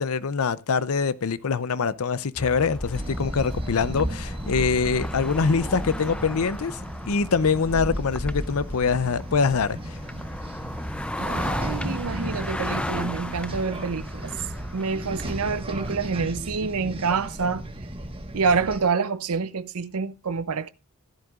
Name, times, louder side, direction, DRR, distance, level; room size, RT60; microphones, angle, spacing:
voice 1, 0.0-6.8 7.1-10.0, left 5 dB, 75° left, 0.6 m, -24 dB
sound 1, 2.4-16.2, left 1 dB, 5° left, 0.5 m, -35 dB
sound 2, 2.9-18.8, right 1 dB, 25° right, 1.4 m, -35 dB
voice 2, 11.2-14.4 14.7-17.7 18.3-20.7, right 5 dB, 85° right, 0.7 m, -27 dB
16.0 x 10.5 x 2.5 m
head